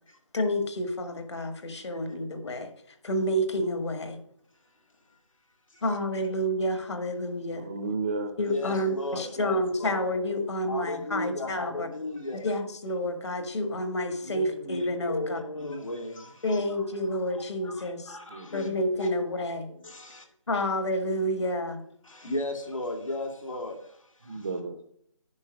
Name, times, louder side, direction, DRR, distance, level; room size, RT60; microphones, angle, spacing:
voice 1, 0.3-2.7 3.0-4.2 5.8-7.7 8.4-11.9 12.4-15.4 16.4-18.1 18.5-19.7 20.5-21.8, left 1 dB, 60° left, 1.7 m, -29 dB
voice 2, 7.5-8.4 10.7-10.8 11.1-11.4 18.3-18.7 19.7-19.8 24.2-24.8, right 4 dB, 25° right, 0.6 m, -34 dB
voice 3, 8.5-10.0 10.7-12.4 14.2-16.6 17.6-18.7 19.0-19.1 19.9-20.2 22.1-23.8, left 2 dB, 90° left, 2.5 m, -35 dB
9.6 x 5.3 x 6.2 m
figure-of-eight pair, 170°, 16 cm